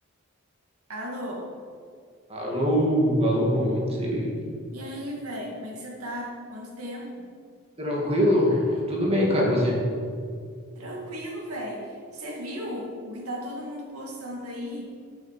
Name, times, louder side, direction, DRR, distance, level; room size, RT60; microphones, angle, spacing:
voice 1, 0.9-1.5 4.7-7.3 10.8-14.8, equal, 85° right, -2 dB, 2.3 m, -35 dB
voice 2, 2.3-4.3 7.8-9.8, equal, 25° right, -3 dB, 2.1 m, -23 dB
11.0 x 7.2 x 5.9 m, 2.2 s
head